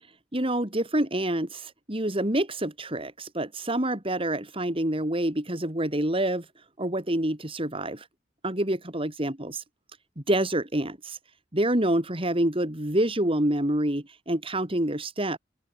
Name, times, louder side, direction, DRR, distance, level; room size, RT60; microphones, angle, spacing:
voice 1, 0.3-6.5 6.8-8.1 8.4-9.6 10.2-11.2 11.5-15.4, right 1 dB, 30° right, 3.6 m, -27 dB
open air
head